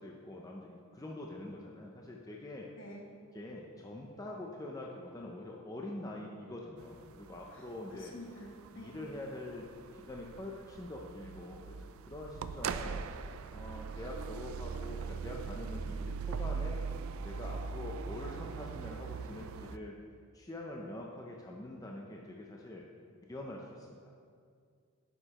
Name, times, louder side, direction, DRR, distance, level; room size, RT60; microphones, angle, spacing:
voice 1, 0.0-2.7 3.3-8.1 8.7-9.7 9.9-16.8 17.2-19.9 20.3-22.8 23.3-24.1, left 1 dB, 15° left, -1 dB, 0.5 m, -45 dB
voice 2, 2.8-3.1 7.5-7.7 8.0-9.0, left 1 dB, 60° left, 0 dB, 1.3 m, -49 dB
sound 1, 6.8-19.8, right 5 dB, 70° right, 0.3 m, -41 dB
11.0 x 6.7 x 3.0 m, 2.2 s
head